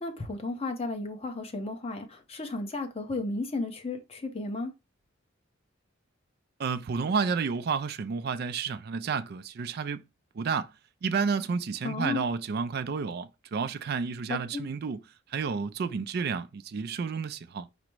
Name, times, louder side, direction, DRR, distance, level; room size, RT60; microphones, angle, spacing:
voice 1, 0.0-4.7 11.8-12.2 14.3-14.6, left 3 dB, 30° left, 0.8 m, -34 dB
voice 2, 6.6-10.0 10.4-10.7 11.0-15.0 15.3-17.7, right 5 dB, 55° right, 0.4 m, -31 dB
5.0 x 2.1 x 4.5 m
head